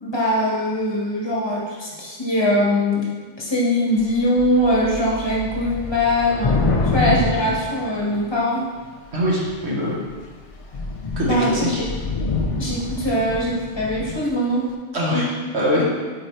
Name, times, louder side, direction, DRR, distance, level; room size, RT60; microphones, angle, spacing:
voice 1, 0.0-3.1 3.4-6.6 6.9-8.6 11.2-11.9 12.6-14.6, left 1 dB, 20° left, -4 dB, 1.3 m, -21 dB
Thunder / Rain, 4.0-4.1 4.4-8.5 9.2-9.7 10.1-10.2 10.5-14.3, left 3 dB, 50° left, 0.4 m, -26 dB
voice 2, 9.1-9.9 11.2-11.7 14.9-15.3 15.5-15.8, equal, 60° right, -5 dB, 1.5 m, -22 dB
8.3 x 4.4 x 3.2 m, 1.4 s
omnidirectional pair, 1.3 m